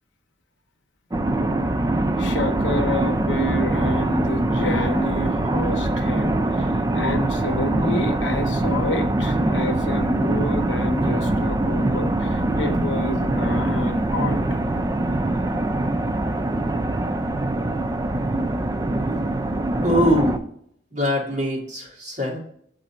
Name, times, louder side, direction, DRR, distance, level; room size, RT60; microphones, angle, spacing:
sound 1, 1.1-20.4, right 2 dB, 20° right, 0.3 m, -23 dB
voice 1, 2.2-6.7 6.9-14.4 15.7-15.8, left 1 dB, 80° left, 7 dB, 0.8 m, -29 dB
voice 2, 19.8-20.4 20.9-22.4, equal, 40° right, -4 dB, 2.1 m, -22 dB
7.3 x 3.9 x 4.3 m, 0.69 s
head